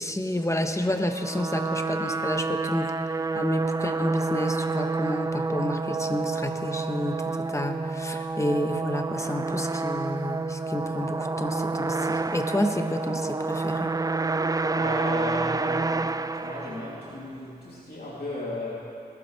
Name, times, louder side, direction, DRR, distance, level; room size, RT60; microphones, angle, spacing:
voice 1, 0.0-2.9 3.3-13.9, left 1 dB, 15° left, 6 dB, 1.1 m, -30 dB
sound 1, 1.0-17.3, right 3 dB, 20° right, 0.3 m, -29 dB
voice 2, 14.7-18.8, left 2 dB, 65° left, -8 dB, 2.9 m, -35 dB
20.5 x 13.0 x 3.3 m, 2.6 s
cardioid pair, 50°, 17 cm